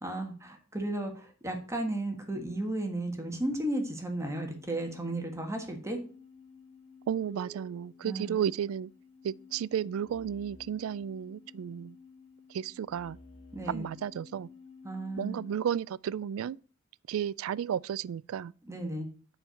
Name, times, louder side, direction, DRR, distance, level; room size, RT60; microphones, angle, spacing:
voice 1, 0.0-6.0 8.0-8.3 13.5-13.9 14.8-15.4 18.6-19.1, right 1 dB, 15° right, 1.4 m, -34 dB
sound 1, 4.4-15.6, left 3 dB, 30° left, 3.5 m, -53 dB
voice 2, 7.1-8.9 9.2-12.0 12.5-13.2 13.7-14.5 15.2-16.6 17.1-18.5, right 8 dB, 85° right, 0.3 m, -33 dB
7.6 x 4.6 x 6.8 m
head